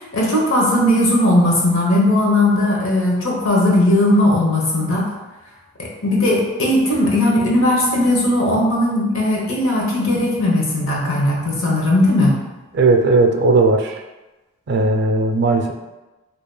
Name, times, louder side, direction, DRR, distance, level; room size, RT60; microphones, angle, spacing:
voice 1, 0.0-5.1 5.8-12.4, left 1 dB, 75° left, -3 dB, 1.0 m, -17 dB
voice 2, 12.7-14.0 14.7-15.7, right 3 dB, 55° right, 5 dB, 0.4 m, -16 dB
4.7 x 2.8 x 2.2 m, 1.1 s
head